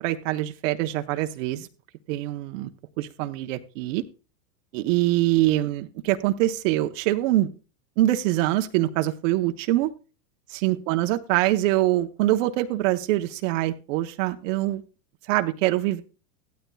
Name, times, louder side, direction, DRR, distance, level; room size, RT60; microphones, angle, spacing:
voice 1, 0.0-1.7 2.1-2.7 3.0-4.0 4.7-7.5 8.0-9.9 10.6-14.8 15.3-16.0, right 15 dB, 55° right, 6 dB, 0.9 m, -24 dB
16.0 x 12.5 x 2.3 m, 0.34 s
hypercardioid pair, 125°, 45 cm